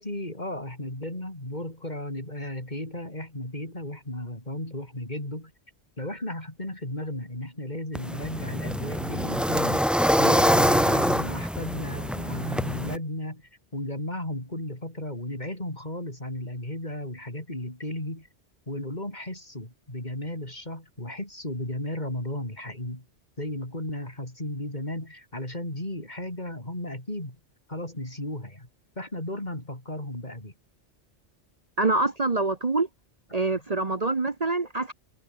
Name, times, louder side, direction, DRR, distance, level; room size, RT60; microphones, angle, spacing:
voice 1, 0.0-5.5 6.0-9.9 10.2-18.3 18.7-23.1 23.4-27.4 27.7-28.7 29.0-30.5 33.5-33.6, left 1 dB, 40° left, 6.0 m, -34 dB
sound 1, 7.9-13.0, equal, ahead, 3.3 m, -24 dB
voice 2, 31.8-32.9 33.3-34.9, right 3 dB, 35° right, 1.3 m, -25 dB
omnidirectional pair, 1.2 m